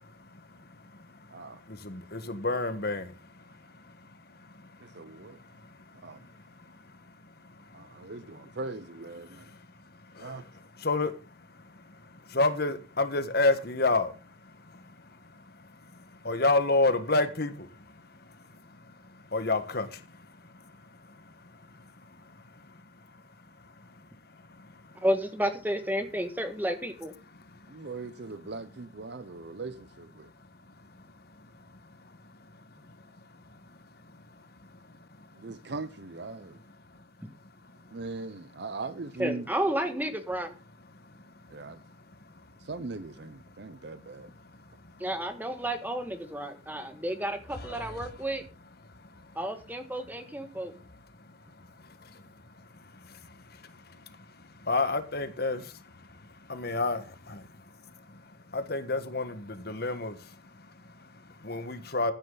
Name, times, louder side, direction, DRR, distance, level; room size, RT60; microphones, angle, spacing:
voice 1, 0.0-3.9 4.4-8.1 9.3-9.6 10.2-22.7 23.6-25.0 27.3-27.9 30.2-30.3 30.8-35.4 36.9-37.3 37.6-38.0 40.9-42.5 43.5-43.6 44.2-45.1 46.9-47.0 47.5-48.1 48.9-49.4 51.2-62.1, left 3 dB, 55° left, 1.5 m, -34 dB
voice 2, 1.3-1.6 4.8-5.4 6.0-6.2 7.7-9.5 10.2-10.4 27.7-30.3 35.3-36.6 37.9-39.5 41.5-41.8 42.6-44.3, right 3 dB, 60° right, 0.7 m, -40 dB
voice 3, 25.0-27.1 39.2-40.5 45.0-48.4 49.4-50.7, right 1 dB, 10° right, 1.8 m, -31 dB
15.0 x 9.9 x 4.0 m
head